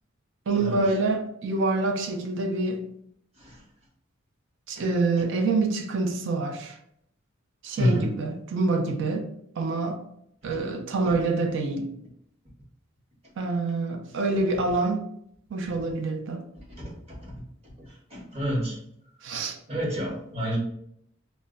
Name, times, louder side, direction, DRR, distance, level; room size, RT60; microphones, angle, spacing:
voice 1, 0.5-2.8 4.7-6.8 7.6-9.3 9.6-10.0 10.4-11.9 13.4-15.0 15.5-16.4 19.2-19.6, right 3 dB, 60° right, 0.4 m, -26 dB
voice 2, 7.8-8.1 16.8-16.9 18.1-18.8 19.7-20.6, equal, 30° right, 0.9 m, -27 dB
2.1 x 2.1 x 3.6 m
head